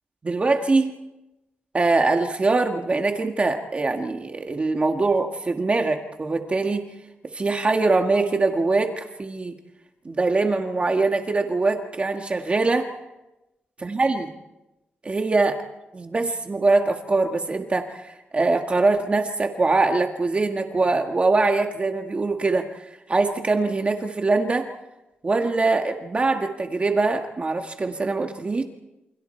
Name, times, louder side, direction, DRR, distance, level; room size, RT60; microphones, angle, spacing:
voice 1, 0.2-0.9 1.7-6.8 7.3-9.6 10.0-12.9 13.8-14.3 15.0-15.6 15.9-24.7 25.2-28.6, right 3 dB, 35° right, 4 dB, 1.7 m, -23 dB
28.5 x 26.5 x 4.5 m, 0.98 s
cardioid pair, 100°, 4 cm